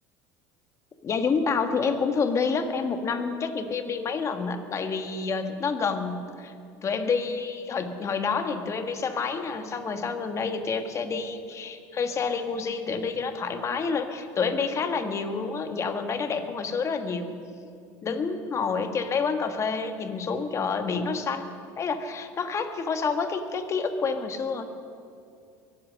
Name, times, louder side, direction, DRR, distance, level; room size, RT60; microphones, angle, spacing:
voice 1, 1.0-6.5 6.8-17.4 18.0-21.5 21.8-24.6, left 5 dB, 35° left, 7 dB, 1.5 m, -28 dB
23.0 x 8.8 x 6.4 m, 2.4 s
supercardioid pair, 100°, 9 cm